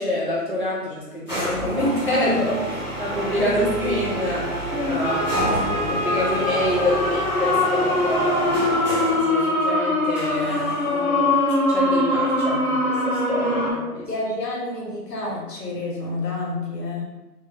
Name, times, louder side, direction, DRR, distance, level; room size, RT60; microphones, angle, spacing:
voice 1, 0.0-5.2 5.5-8.6 9.0-11.4 11.7-14.1, left 1 dB, 35° right, -8 dB, 0.5 m, -26 dB
sound 1, 1.3-9.3 10.1-11.1, right 2 dB, 30° left, 0.7 m, -28 dB
voice 2, 4.7-5.1 5.5-6.1 6.5-6.9 14.1-17.0, left 2 dB, 85° left, -3 dB, 1.1 m, -30 dB
sound 2, 5.0-13.7, left 1 dB, 65° left, 0.7 m, -23 dB
2.1 x 2.1 x 2.8 m, 1.1 s
hypercardioid pair, 175°, 47 cm